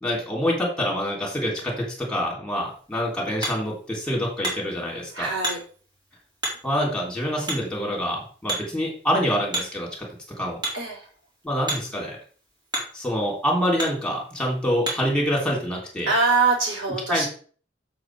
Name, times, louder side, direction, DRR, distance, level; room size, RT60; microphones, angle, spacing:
voice 1, 0.0-5.3 6.6-9.9 10.4-10.6 11.4-12.2 12.9-16.1 17.1-17.3, equal, 5° left, -3 dB, 3.3 m, -26 dB
Hammer, 2.5-15.2, right 1 dB, 25° right, 3.6 m, -36 dB
voice 2, 5.1-5.6 10.7-11.1 16.1-17.3, right 4 dB, 70° right, -1 dB, 4.2 m, -23 dB
7.8 x 7.1 x 4.8 m, 0.42 s
head